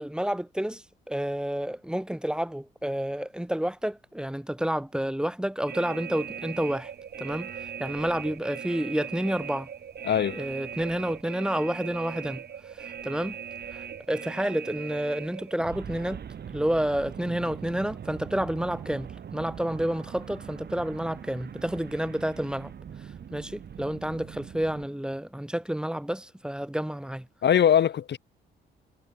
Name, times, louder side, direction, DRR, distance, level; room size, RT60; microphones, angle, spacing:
voice 1, 0.0-6.9 7.2-7.5 7.8-9.7 10.3-12.4 12.7-13.4 13.7-16.2 16.5-22.7 23.3-27.3, equal, 5° right, 6.7 m, -30 dB
sound 1, 5.7-24.9, right 8 dB, 55° right, 7.9 m, -40 dB
voice 2, 10.0-10.4 27.4-28.2, left 9 dB, 60° left, 4.4 m, -21 dB
cardioid pair, 90°, 20 cm